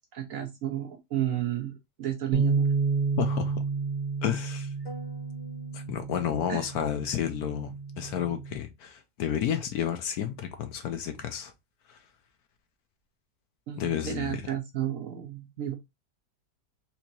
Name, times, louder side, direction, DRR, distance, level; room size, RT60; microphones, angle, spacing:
voice 1, 0.1-2.7 6.5-6.7 13.7-15.7, right 11 dB, 65° right, 0.9 m, -32 dB
Bass guitar, 2.3-8.6, right 5 dB, 85° right, 1.4 m, -30 dB
voice 2, 3.2-3.6 4.2-4.7 5.7-11.5 11.9-12.0 13.8-14.4, left 9 dB, 70° left, 1.0 m, -31 dB
sound 1, 4.9-6.8, equal, 35° left, 1.3 m, -48 dB
4.4 x 2.8 x 2.6 m
omnidirectional pair, 1.9 m